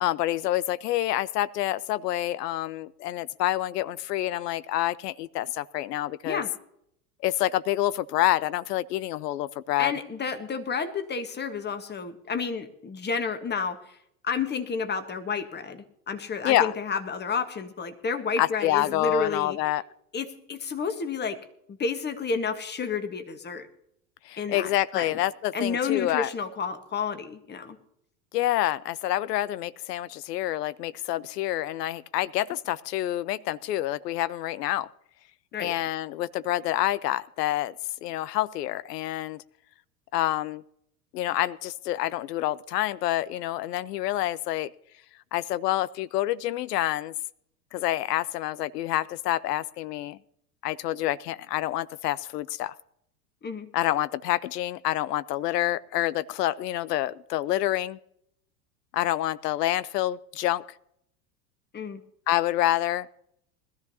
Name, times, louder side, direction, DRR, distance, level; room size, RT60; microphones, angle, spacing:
voice 1, 0.0-6.4 7.2-9.9 16.4-16.7 18.4-19.8 24.2-26.3 28.3-34.9 35.6-37.7 38.0-39.4 40.1-40.6 41.1-44.7 45.3-47.1 47.7-50.2 50.6-52.7 53.7-58.0 58.9-60.6 62.3-63.1, left 14 dB, 75° left, 20 dB, 0.6 m, -27 dB
voice 2, 9.8-14.0 14.2-19.6 20.1-21.4 21.8-23.7 24.4-25.2 25.5-27.8 35.5-35.7 53.4-53.7 61.7-62.0, left 5 dB, 20° left, 10 dB, 1.3 m, -31 dB
21.0 x 13.0 x 2.8 m, 0.73 s
hypercardioid pair, 90°, 49 cm